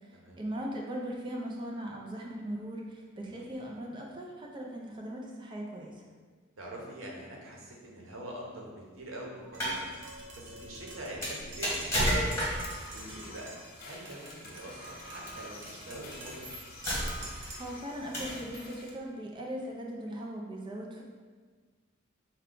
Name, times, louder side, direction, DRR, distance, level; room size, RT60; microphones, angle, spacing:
voice 1, 0.1-6.0 17.6-21.0, equal, 25° right, -1 dB, 0.4 m, -39 dB
voice 2, 6.6-9.8 10.4-12.3 12.9-13.5 13.8-16.5, right 1 dB, 90° right, -2 dB, 0.8 m, -44 dB
sound 1, 9.4-9.8 11.2-12.8 14.1-14.3 15.5-15.7 16.3-16.4 16.8-17.4 18.1-18.4, equal, 15° left, 1.2 m, -30 dB
Tap, 9.5-17.8, right 1 dB, 60° right, 0.7 m, -48 dB
sound 2, 12.0-18.9, left 1 dB, 50° left, 0.6 m, -47 dB
4.6 x 2.2 x 3.7 m, 1.5 s
head